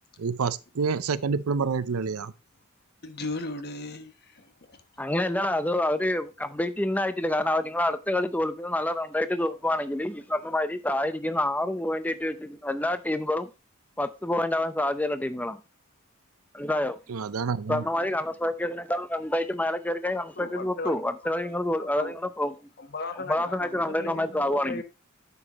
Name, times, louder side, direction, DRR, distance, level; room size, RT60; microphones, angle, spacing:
voice 1, 0.2-2.3 17.1-17.8, right 5 dB, 85° right, 0.6 m, -28 dB
voice 2, 3.0-4.8 20.4-21.6 21.9-22.1 22.8-24.8, left 3 dB, 50° left, 1.1 m, -37 dB
voice 3, 5.0-13.5 14.0-15.6 16.5-17.0 17.7-22.5 23.3-24.8, left 1 dB, 5° left, 0.6 m, -27 dB
9.6 x 7.0 x 2.9 m
head